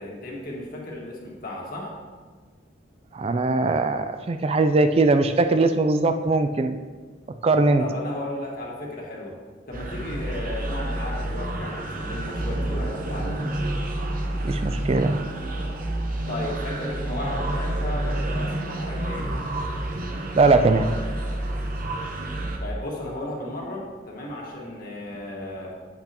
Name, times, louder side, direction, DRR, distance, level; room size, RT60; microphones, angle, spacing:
voice 1, 0.0-1.9 7.8-9.3 9.7-13.4 16.3-19.4 22.6-25.7, left 1 dB, 50° left, -2 dB, 1.8 m, -34 dB
voice 2, 3.1-6.8 7.4-7.8 14.4-15.1 20.4-20.9, right 3 dB, 30° right, 8 dB, 0.3 m, -20 dB
sound 1, 9.7-22.6, right 1 dB, 50° right, 0.9 m, -29 dB
8.6 x 8.2 x 2.9 m, 1.5 s
head